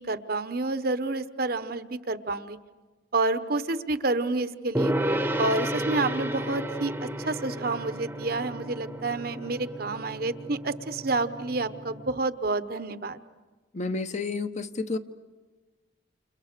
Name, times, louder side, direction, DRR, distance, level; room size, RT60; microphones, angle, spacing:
voice 1, 0.0-2.6 3.1-4.9 5.4-13.2, right 2 dB, 50° right, 11 dB, 1.0 m, -29 dB
Gong, 4.8-12.2, right 1 dB, 10° right, 1.0 m, -32 dB
voice 2, 13.7-15.0, left 3 dB, 35° left, 9 dB, 1.0 m, -30 dB
30.0 x 29.0 x 6.7 m, 1.3 s
head